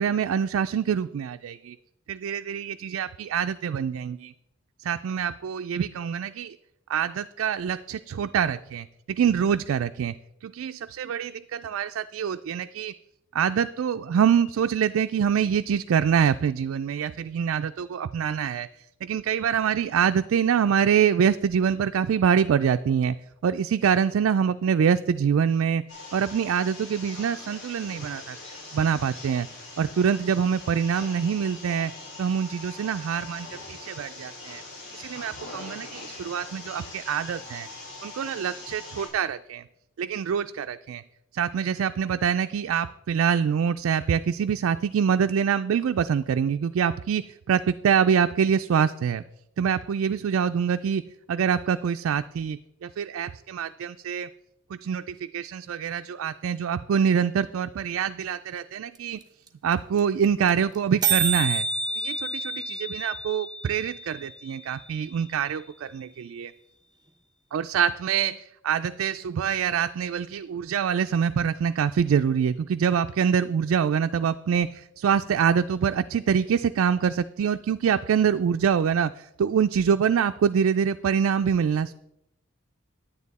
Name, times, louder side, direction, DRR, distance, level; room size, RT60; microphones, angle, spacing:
voice 1, 0.0-1.8 2.1-4.3 4.8-6.6 6.9-10.1 10.4-12.9 13.3-18.7 19.0-23.2 23.4-25.8 26.1-28.4 28.7-29.5 29.8-31.9 32.2-34.6 34.9-37.7 38.0-39.6 40.0-41.0 41.3-49.2 49.6-51.0 51.3-54.3 54.7-59.2 59.6-61.7 62.0-66.5 67.5-81.9, right 7 dB, 75° right, 9 dB, 0.3 m, -25 dB
sound 1, 25.9-39.1, left 2 dB, 55° left, 4.8 m, -42 dB
sound 2, 58.9-59.0 59.2-59.3 59.5-59.7 60.0-60.1 60.2-60.5 60.7-60.8 61.0-65.0, right 4 dB, 20° right, 0.8 m, -29 dB
9.6 x 9.6 x 4.1 m, 0.82 s
head